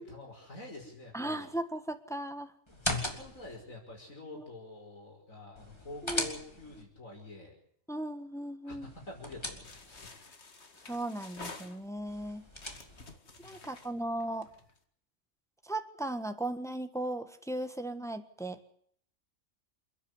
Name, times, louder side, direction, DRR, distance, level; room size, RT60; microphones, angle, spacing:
voice 1, 0.0-1.5 2.7-7.5 8.6-10.1 13.4-13.7, left 2 dB, 85° left, 0 dB, 6.1 m, -47 dB
voice 2, 1.1-2.5 4.3-4.4 6.0-6.3 7.9-8.9 10.9-12.4 13.4-14.5 15.6-18.7, right 1 dB, ahead, 8 dB, 1.4 m, -37 dB
sound 1, 2.7-3.6 5.6-6.8 8.8-10.1 12.1-13.2, left 1 dB, 20° left, 3.1 m, -38 dB
sound 2, 9.6-12.1 12.5-14.8, left 3 dB, 55° left, 2.3 m, -50 dB
28.5 x 10.0 x 9.8 m, 0.64 s
omnidirectional pair, 1.4 m